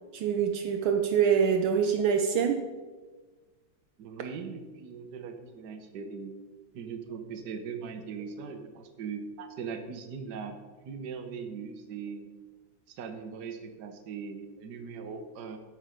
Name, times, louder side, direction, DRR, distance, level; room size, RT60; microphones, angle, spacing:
voice 1, 0.1-2.6, right 7 dB, 75° right, 5 dB, 1.5 m, -25 dB
voice 2, 4.0-6.3 6.7-10.6 10.8-12.3 12.9-15.6, right 6 dB, 60° right, 6 dB, 1.5 m, -40 dB
13.0 x 5.3 x 5.1 m, 1.3 s
omnidirectional pair, 2.3 m